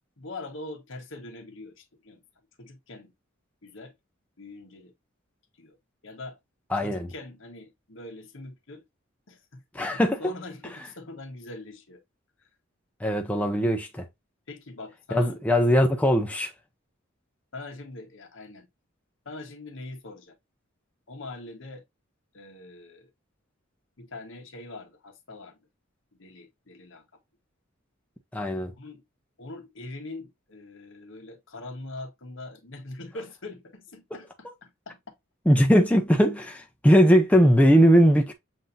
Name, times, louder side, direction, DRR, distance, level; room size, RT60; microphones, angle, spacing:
voice 1, 0.2-2.2 2.6-3.1 3.6-3.9 4.4-4.9 5.6-5.8 6.0-6.4 6.8-8.8 9.3-12.0 14.5-15.4 17.5-18.7 19.2-20.3 21.1-21.8 22.3-23.1 24.0-25.6 26.1-27.1 28.8-29.0 29.4-35.0, left 2 dB, 65° left, 1.2 m, -42 dB
voice 2, 6.7-7.1 9.7-10.2 13.0-14.1 15.1-16.5 28.3-28.7 35.5-38.3, equal, 5° left, 0.5 m, -20 dB
7.4 x 2.6 x 2.6 m
head